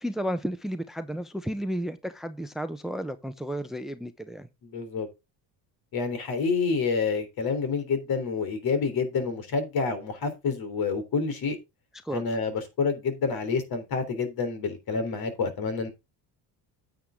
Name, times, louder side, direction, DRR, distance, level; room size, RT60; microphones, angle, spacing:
voice 1, 0.0-4.5 12.0-12.2, equal, ahead, 0.8 m, -32 dB
voice 2, 4.6-5.1 5.9-11.6 12.1-15.9, left 5 dB, 55° left, 3.7 m, -28 dB
9.3 x 8.4 x 3.7 m
cardioid pair, 105°, 42 cm